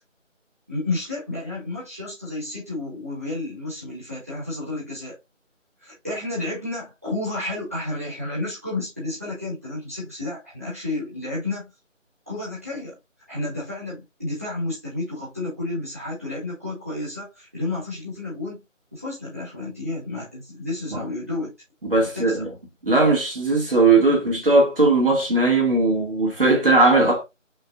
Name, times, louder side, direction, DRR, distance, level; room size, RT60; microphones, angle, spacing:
voice 1, 0.7-5.2 5.8-11.7 12.3-13.0 13.3-18.6 18.9-21.5 21.9-22.4, left 2 dB, 10° right, 1.5 m, -31 dB
voice 2, 21.8-22.5 22.8-27.2, right 3 dB, 45° right, 2.2 m, -18 dB
5.3 x 3.3 x 2.5 m
figure-of-eight pair, 170°, 39 cm